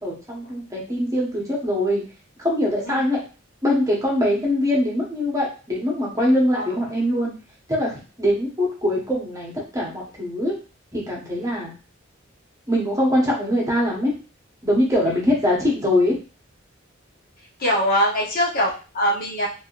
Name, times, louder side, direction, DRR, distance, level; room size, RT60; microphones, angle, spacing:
voice 1, 0.0-2.0 2.4-3.2 3.6-7.3 7.7-10.6 10.9-11.7 12.7-14.1 14.6-16.2, left 1 dB, 15° right, -4 dB, 1.0 m, -22 dB
voice 2, 17.6-19.5, equal, 50° left, -3 dB, 1.0 m, -22 dB
3.5 x 2.7 x 2.5 m, 0.34 s
head